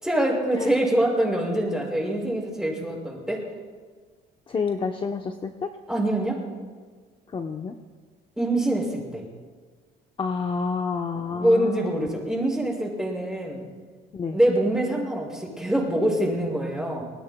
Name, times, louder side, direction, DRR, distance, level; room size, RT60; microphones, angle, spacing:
voice 1, 0.0-3.4 5.9-6.4 8.4-9.2 11.1-13.6 14.3-17.0, right 1 dB, 5° right, -3 dB, 6.4 m, -24 dB
voice 2, 4.5-5.7 7.3-7.7 10.2-12.1 14.1-14.4, left 5 dB, 30° left, 4 dB, 0.9 m, -29 dB
26.5 x 20.5 x 2.3 m, 1.5 s
cardioid pair, 110°, 17 cm